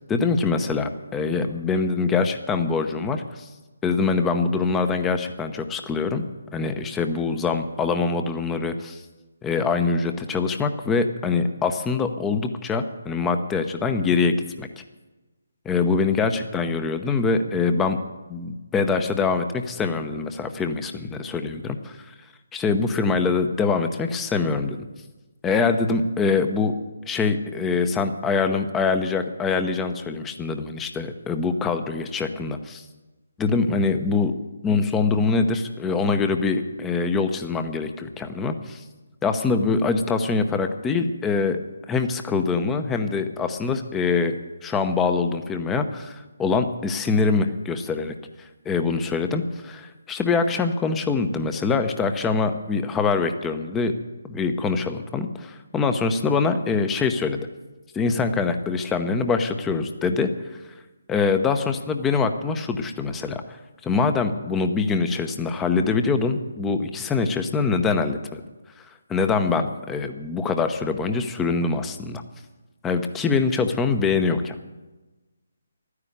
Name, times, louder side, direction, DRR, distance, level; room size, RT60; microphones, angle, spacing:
voice 1, 0.1-3.5 3.8-6.3 6.5-9.0 9.4-14.7 15.6-18.0 18.3-21.8 22.5-24.8 25.4-26.7 27.1-32.8 33.4-34.3 34.6-38.8 39.2-41.6 41.9-44.3 44.6-53.9 54.2-57.5 57.9-60.3 61.1-63.4 63.8-68.4 69.1-72.2 72.8-74.6, left 4 dB, 10° left, 8 dB, 0.8 m, -24 dB
13.0 x 9.8 x 8.0 m, 1.1 s
figure-of-eight pair, 145°, 0 cm